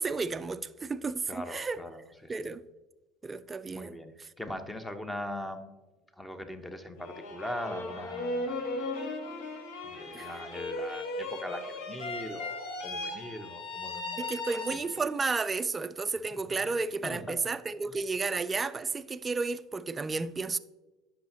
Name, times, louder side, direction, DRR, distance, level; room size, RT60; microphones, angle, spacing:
voice 1, 0.0-1.8 2.3-2.6 3.2-3.9 10.1-10.3 14.2-20.6, right 4 dB, 25° right, 0.3 m, -32 dB
voice 2, 1.3-2.5 3.7-5.8 6.1-9.1 9.8-14.8 16.6-16.8 17.0-17.4 17.9-18.0, equal, 10° left, 0.9 m, -41 dB
sound 1, 7.0-15.2, left 2 dB, 70° left, 1.1 m, -37 dB
10.0 x 5.8 x 2.8 m
hypercardioid pair, 80°, 0 cm